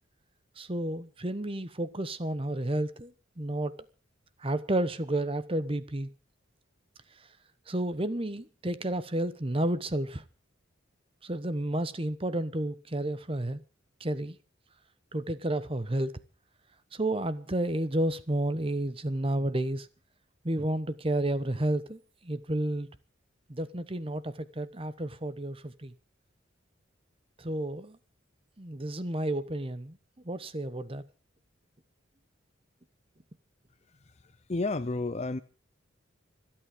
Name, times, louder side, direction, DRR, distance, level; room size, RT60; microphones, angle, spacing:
voice 1, 0.6-3.7 4.4-6.1 7.7-10.2 11.2-13.6 14.0-14.4 15.1-16.1 16.9-19.9 20.4-22.9 23.5-25.9 27.4-28.0 28.6-30.0 30.2-31.0, right 1 dB, 30° right, 1.0 m, -31 dB
voice 2, 34.0-35.4, left 2 dB, 35° left, 0.6 m, -32 dB
25.5 x 8.8 x 5.1 m
head